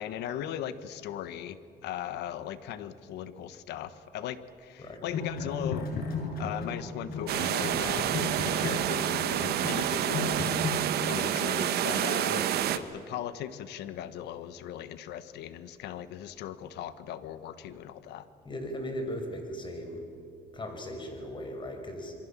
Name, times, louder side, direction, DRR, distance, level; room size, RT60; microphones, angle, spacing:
voice 1, 0.0-10.5 11.1-12.4 12.7-18.3, left 10 dB, 80° left, 13 dB, 1.3 m, -38 dB
voice 2, 4.8-5.2 12.3-12.9 18.4-20.0 20.5-22.1, equal, 30° left, 4 dB, 5.9 m, -38 dB
sound 1, 5.1-6.8 7.1-10.8, left 4 dB, 65° left, 6.8 m, -34 dB
sound 2, 7.3-12.8, right 11 dB, 70° right, 1.4 m, -28 dB
27.0 x 23.5 x 7.4 m, 2.6 s
cardioid pair, 110°, 17 cm